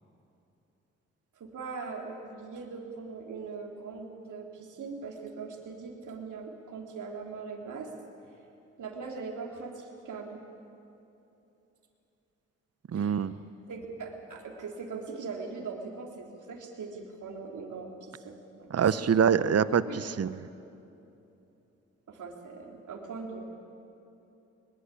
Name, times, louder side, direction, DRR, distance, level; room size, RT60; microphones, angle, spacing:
voice 1, 1.4-7.9 8.2-8.3 8.8-10.5 12.9-13.2 13.7-19.4 19.8-20.0 22.1-23.4, right 4 dB, 65° right, 1 dB, 3.6 m, -41 dB
voice 2, 12.9-13.3 18.7-20.4, right 7 dB, 50° right, 15 dB, 1.0 m, -25 dB
21.5 x 21.0 x 8.6 m, 2.9 s
hypercardioid pair, 45°, 32 cm